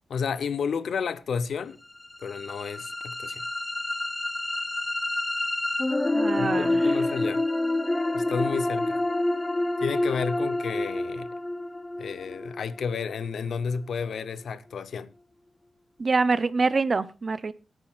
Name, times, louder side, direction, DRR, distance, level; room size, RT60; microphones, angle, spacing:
voice 1, 0.1-1.8 2.2-3.5 6.4-7.4 8.1-9.0 9.8-11.3 12.0-15.1, left 6 dB, 80° left, 0.7 m, -31 dB
sound 1, 2.0-14.0, left 2 dB, 15° left, 0.5 m, -28 dB
voice 2, 6.1-6.8 16.0-17.5, right 4 dB, 40° right, 0.5 m, -25 dB
23.5 x 8.9 x 2.4 m
wide cardioid pair, 150°, 0 cm